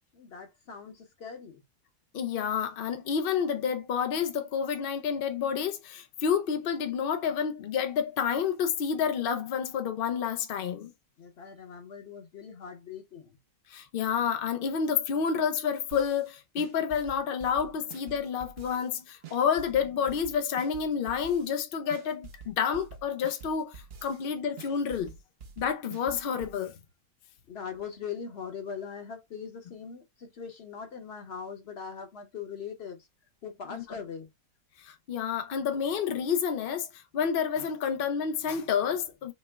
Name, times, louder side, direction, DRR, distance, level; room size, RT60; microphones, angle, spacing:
voice 1, 0.1-1.6 11.2-13.4 27.5-33.1 33.4-34.3, left 6 dB, 50° left, 1.0 m, -41 dB
voice 2, 2.1-10.9 13.7-25.1 25.6-26.7 33.7-33.8 34.8-39.3, left 7 dB, 70° left, 0.5 m, -29 dB
sound 1, 15.9-16.3 16.6-18.9 19.2-21.6 21.9-24.3 24.6-26.6, right 6 dB, 55° right, 0.7 m, -47 dB
4.4 x 2.1 x 3.3 m
omnidirectional pair, 1.6 m